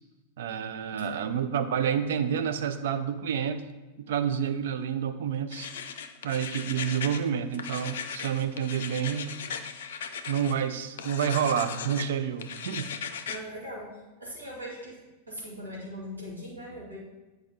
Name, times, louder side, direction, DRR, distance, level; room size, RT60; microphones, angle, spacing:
voice 1, 0.4-3.6 4.1-5.7 6.2-9.3 10.3-12.9, right 8 dB, 55° right, 9 dB, 0.5 m, -29 dB
sound 1, 5.5-7.2 7.5-10.5 11.0-12.1 12.4-13.4, left 7 dB, 60° left, 0.5 m, -37 dB
voice 2, 13.3-13.9 14.2-15.0 15.3-17.0, equal, 75° right, -6 dB, 2.0 m, -40 dB
8.5 x 4.7 x 4.2 m, 1.1 s
figure-of-eight pair, 90°, 0 cm